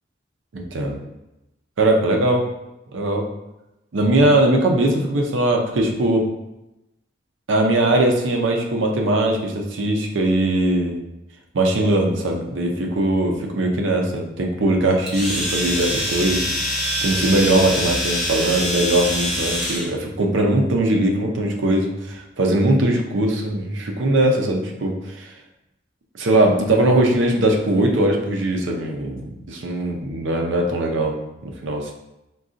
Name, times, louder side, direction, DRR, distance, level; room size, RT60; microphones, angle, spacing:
voice 1, 0.5-1.0 1.8-2.4 2.9-3.3 3.9-6.3 7.5-11.0 11.5-25.3 26.1-31.2 31.4-31.9, right 1 dB, 90° right, 2 dB, 0.5 m, -20 dB
Domestic sounds home sounds, 15.1-19.9, equal, ahead, 0.7 m, -24 dB
3.8 x 2.3 x 2.5 m, 0.94 s
head